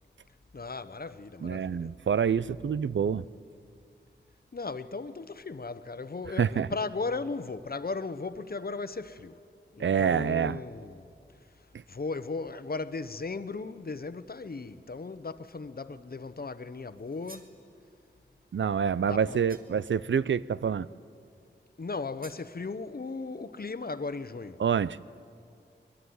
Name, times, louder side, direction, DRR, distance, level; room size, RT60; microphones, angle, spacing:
voice 1, 0.5-1.9 4.5-9.3 9.7-11.1 11.9-17.4 19.1-19.4 21.8-24.6, left 3 dB, 50° left, 1.0 m, -36 dB
voice 2, 1.4-3.2 6.4-6.7 9.8-10.6 18.5-20.9 24.6-25.0, right 7 dB, 75° right, 0.5 m, -27 dB
sound 1, 17.0-17.6 19.5-19.9 22.2-22.5, right 2 dB, 50° right, 2.1 m, -52 dB
23.0 x 22.0 x 9.6 m
wide cardioid pair, 55°, 19 cm